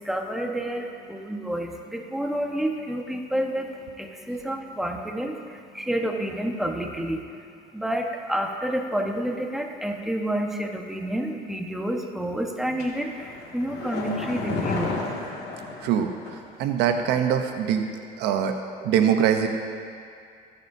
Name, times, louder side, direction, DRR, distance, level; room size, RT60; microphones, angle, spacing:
voice 1, 0.0-7.5 7.7-15.0, right 1 dB, ahead, 1 dB, 1.2 m, -29 dB
sound 1, 12.8-16.5 16.8-16.9, left 3 dB, 80° left, 2.2 m, -32 dB
voice 2, 15.8-17.9 18.2-19.5, right 8 dB, 90° right, 6 dB, 0.8 m, -23 dB
23.0 x 8.8 x 2.8 m, 2.3 s
cardioid pair, 110°, 17 cm